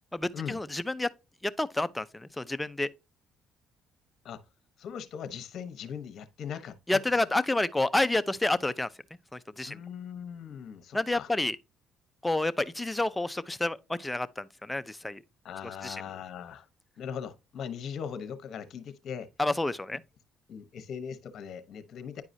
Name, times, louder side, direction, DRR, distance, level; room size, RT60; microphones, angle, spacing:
voice 1, 0.1-1.1 1.4-2.9 6.9-8.9 9.3-9.8 10.9-11.6 12.2-15.2 15.8-16.0 19.4-20.0, left 2 dB, 10° left, 0.5 m, -29 dB
voice 2, 4.8-7.0 9.7-11.3 15.4-16.7 17.0-19.3 20.5-22.2, left 7 dB, 60° left, 1.0 m, -39 dB
9.7 x 4.8 x 2.7 m
cardioid pair, 85°, 0 cm